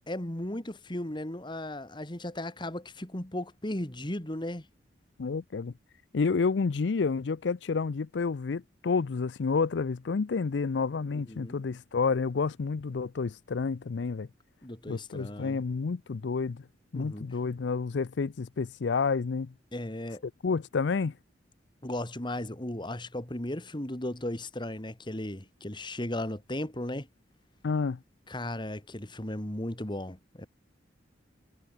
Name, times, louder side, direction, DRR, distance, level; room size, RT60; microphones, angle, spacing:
voice 1, 0.1-4.6 11.3-11.6 14.6-15.6 16.9-17.3 19.7-20.2 21.8-27.1 28.3-30.5, left 1 dB, 25° left, 2.0 m, -36 dB
voice 2, 5.2-5.7 6.1-14.3 14.9-16.6 16.9-19.5 20.4-21.1 27.6-28.0, left 4 dB, 75° left, 0.5 m, -29 dB
head